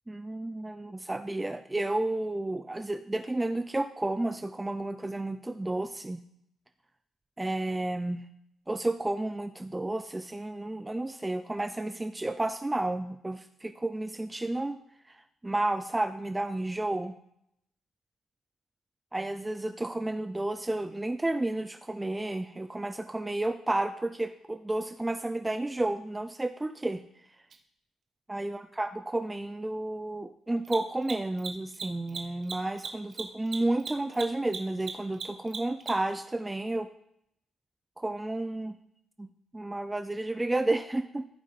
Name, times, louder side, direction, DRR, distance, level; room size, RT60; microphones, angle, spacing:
voice 1, 0.1-6.2 7.4-8.2 8.7-14.8 15.4-17.1 19.1-27.0 28.3-36.9 38.0-38.8 39.2-41.3, right 2 dB, 15° right, 9 dB, 0.4 m, -31 dB
Mechanisms, 27.5-27.6 30.6-36.2, right 5 dB, 55° right, 1.2 m, -38 dB
15.0 x 5.5 x 3.3 m, 0.76 s
cardioid pair, 90°, 0 cm